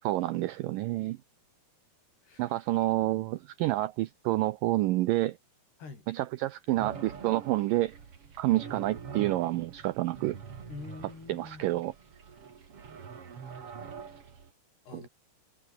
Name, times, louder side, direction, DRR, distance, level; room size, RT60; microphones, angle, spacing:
voice 1, 0.0-1.2 2.4-5.4 6.1-7.9 8.4-10.4 11.3-11.9 14.9-15.1, right 17 dB, 85° right, 1.9 m, -28 dB
sound 1, 6.8-14.5, right 6 dB, 40° right, 3.0 m, -45 dB
voice 2, 10.7-11.8 13.5-13.9 14.9-15.1, left 4 dB, 75° left, 9.8 m, -46 dB
omnidirectional pair, 4.7 m